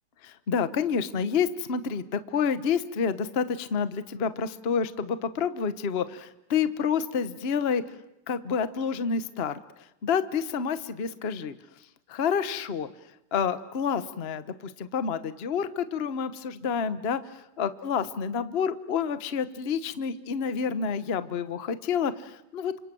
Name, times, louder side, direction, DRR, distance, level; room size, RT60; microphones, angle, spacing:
voice 1, 0.2-7.8 8.3-9.6 10.0-11.5 12.1-12.9 13.3-17.2 17.6-22.7, left 6 dB, 40° left, 13 dB, 1.1 m, -28 dB
29.5 x 26.0 x 7.7 m, 0.83 s
omnidirectional pair, 2.3 m